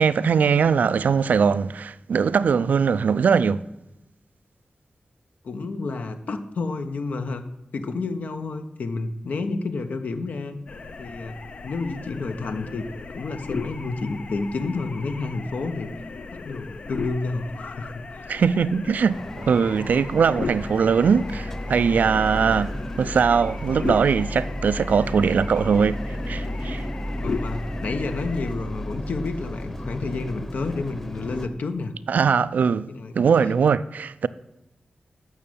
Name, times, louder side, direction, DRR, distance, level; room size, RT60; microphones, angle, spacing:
voice 1, 0.0-3.6 18.3-19.2 19.4-22.7 23.0-26.0 26.3-26.8 32.1-34.3, right 6 dB, 80° right, 0.5 m, -21 dB
voice 2, 5.4-7.4 7.7-10.6 11.0-15.9 16.3-18.4 27.2-31.9 32.9-33.1, left 3 dB, 70° left, 1.1 m, -30 dB
sound 1, 10.7-28.5, left 4 dB, 45° left, 0.6 m, -37 dB
sound 2, 19.1-31.5, left 1 dB, 15° left, 1.1 m, -33 dB
12.5 x 6.4 x 8.7 m
wide cardioid pair, 160°, 3 cm